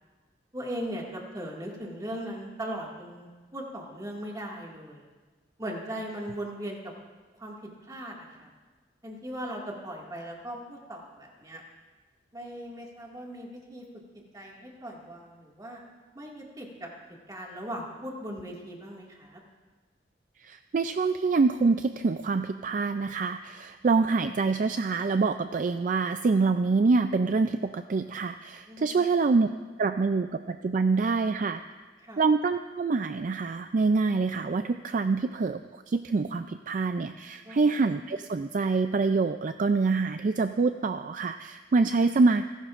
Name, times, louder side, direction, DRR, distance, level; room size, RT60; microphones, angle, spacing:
voice 1, 0.5-5.1 5.6-6.8 7.4-7.5 7.8-8.5 9.0-11.6 12.3-13.9 14.3-15.8 16.1-16.9 17.3-19.4 28.7-29.0 32.0-32.2 37.4-37.7, right 1 dB, 20° right, -2 dB, 2.1 m, -38 dB
voice 2, 20.4-29.5 29.8-31.6 32.2-35.6 35.9-42.5, right 4 dB, 45° right, 8 dB, 0.4 m, -26 dB
29.0 x 11.5 x 2.5 m, 1.4 s
head